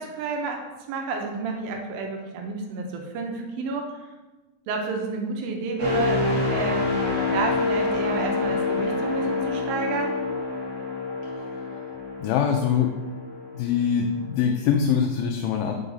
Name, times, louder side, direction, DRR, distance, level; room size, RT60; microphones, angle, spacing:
voice 1, 0.0-3.9 4.7-7.0 7.3-10.2, right 3 dB, 85° right, 2 dB, 2.5 m, -30 dB
sound 1, 5.8-13.6 14.1-14.3, left 3 dB, 40° right, 2.5 m, -27 dB
voice 2, 11.5-11.8 12.2-13.0 13.5-15.8, left 7 dB, 85° left, 3 dB, 2.3 m, -23 dB
5.7 x 4.9 x 3.9 m, 1.2 s
omnidirectional pair, 4.2 m